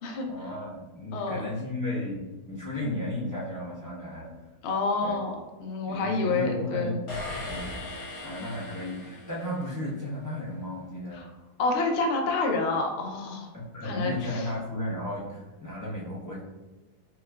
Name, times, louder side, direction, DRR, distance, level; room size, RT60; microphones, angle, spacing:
voice 1, 0.3-4.3 5.0-5.2 5.9-7.1 7.5-11.2 13.5-16.4, left 1 dB, 20° left, -8 dB, 0.5 m, -34 dB
voice 2, 1.1-1.5 4.6-7.0 11.1-11.3 11.6-13.5 13.8-14.5, left 3 dB, 65° left, 1 dB, 0.7 m, -28 dB
sound 1, 7.1-9.9, left 2 dB, 85° left, 1.7 m, -39 dB
5.6 x 2.3 x 2.2 m, 1.2 s
omnidirectional pair, 1.7 m